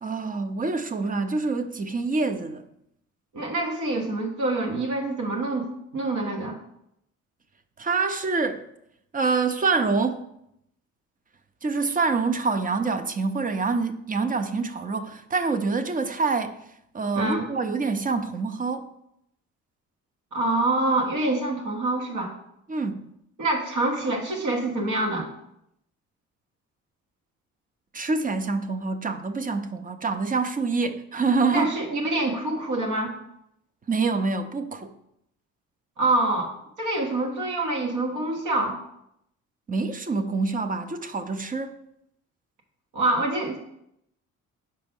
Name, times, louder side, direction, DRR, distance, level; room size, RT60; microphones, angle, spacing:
voice 1, 0.0-2.6 7.8-8.7 9.1-10.2 11.6-16.6 16.9-18.9 22.7-23.1 27.9-31.8 33.9-34.9 39.7-41.8, right 4 dB, 30° right, 0.5 m, -26 dB
voice 2, 3.3-5.7 5.9-6.6 17.1-17.5 20.3-22.3 23.4-25.3 31.5-33.1 36.0-36.5 36.8-38.8 42.9-43.6, right 2 dB, 80° right, 1.4 m, -26 dB
5.1 x 4.4 x 5.3 m
cardioid pair, 90°, 30 cm